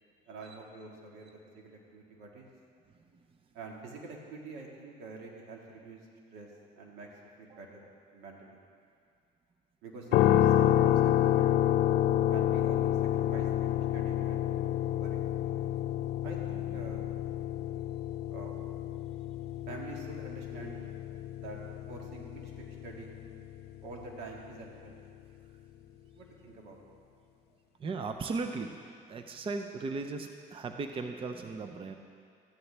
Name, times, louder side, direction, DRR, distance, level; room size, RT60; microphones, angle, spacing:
voice 1, 0.3-2.5 3.5-6.0 6.3-6.5 6.8-7.1 7.4-7.9 8.1-8.6 9.8-11.5 12.3-15.3 16.2-17.1 18.3-18.6 19.7-20.8 21.4-21.6 21.9-23.1 23.8-25.0 26.1-26.8, right 3 dB, 90° right, -1 dB, 1.8 m, -46 dB
sound 1, 10.1-24.1, left 11 dB, 75° left, 0.5 m, -29 dB
voice 2, 27.8-28.8 29.1-31.9, right 4 dB, 30° right, 6 dB, 0.6 m, -37 dB
14.0 x 10.5 x 3.4 m, 2.2 s
cardioid pair, 110°, 17 cm